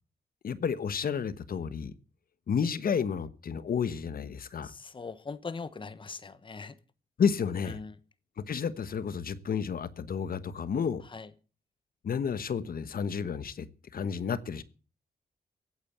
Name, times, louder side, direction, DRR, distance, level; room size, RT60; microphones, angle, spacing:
voice 1, 0.4-1.9 2.5-4.7 7.2-7.8 8.5-11.0 12.0-13.7 13.9-14.6, left 6 dB, 65° left, 1.2 m, -31 dB
voice 2, 4.6-6.7 7.8-7.9 11.1-11.3, left 4 dB, 30° left, 1.2 m, -40 dB
16.0 x 8.9 x 8.0 m
wide cardioid pair, 115°, 16 cm